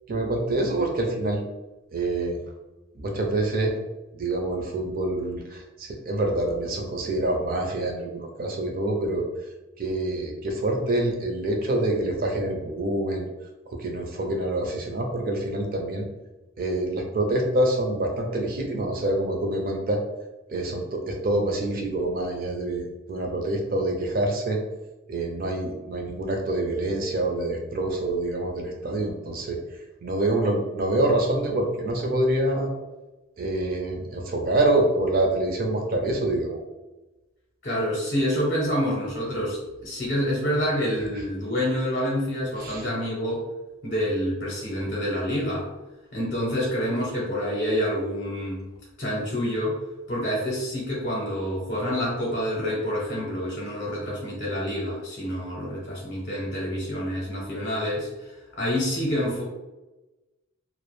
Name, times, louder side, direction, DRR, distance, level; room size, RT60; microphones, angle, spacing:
voice 1, 0.1-1.4 1.9-2.4 3.0-3.7 4.1-9.2 9.8-13.3 13.8-16.0 16.6-20.0 20.5-24.6 25.1-29.6 30.0-32.7 33.4-36.6 42.6-42.9, right 1 dB, 40° right, 2 dB, 0.4 m, -26 dB
voice 2, 37.6-43.4 43.8-45.7 46.1-48.6 49.0-49.8 50.1-59.4, equal, 45° left, -4 dB, 0.6 m, -27 dB
2.2 x 2.0 x 3.0 m, 1.1 s
head